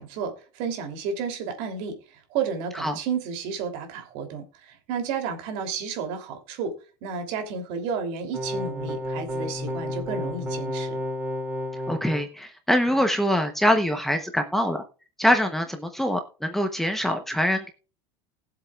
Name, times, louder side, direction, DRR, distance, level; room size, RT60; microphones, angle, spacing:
voice 1, 0.0-1.9 2.3-6.7 7.0-11.0, right 6 dB, 60° right, 5 dB, 3.1 m, -32 dB
sound 1, 8.3-12.2, left 1 dB, 15° right, 2.5 m, -31 dB
voice 2, 11.9-14.8 15.2-17.7, equal, ahead, 5 dB, 0.9 m, -24 dB
19.5 x 7.7 x 2.4 m, 0.34 s
cardioid pair, 165°, 12 cm